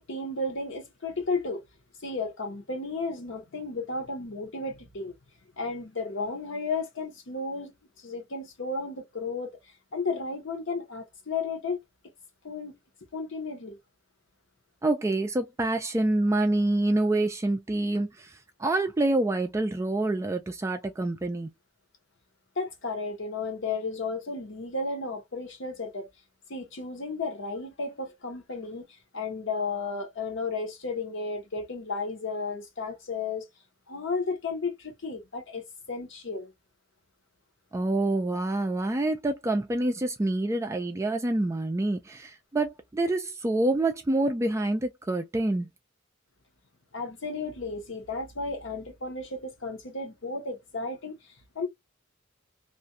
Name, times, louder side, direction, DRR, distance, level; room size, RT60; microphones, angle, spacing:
voice 1, 0.0-1.6 2.0-5.1 5.6-7.7 8.0-9.6 9.9-11.8 12.4-12.7 13.1-13.8 22.6-26.1 26.5-28.9 29.1-33.5 33.9-36.5 46.9-51.2 51.5-51.7, left 3 dB, 65° left, 0.9 m, -33 dB
voice 2, 14.8-21.5 37.7-45.7, right 2 dB, 15° right, 0.3 m, -27 dB
2.4 x 2.2 x 2.6 m
head